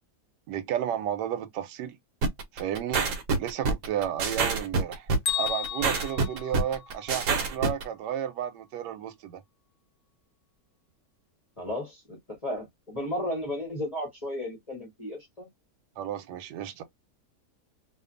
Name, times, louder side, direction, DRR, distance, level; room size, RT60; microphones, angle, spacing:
voice 1, 0.5-2.0 2.5-3.0 3.4-9.4 16.0-16.8, right 10 dB, 90° right, 1.2 m, -32 dB
sound 1, 2.2-7.8, right 4 dB, 70° right, 1.1 m, -26 dB
Bell, 5.2-7.3, left 9 dB, 65° left, 1.1 m, -33 dB
voice 2, 11.6-15.5, left 1 dB, 25° left, 0.9 m, -34 dB
2.6 x 2.4 x 2.4 m
omnidirectional pair, 1.8 m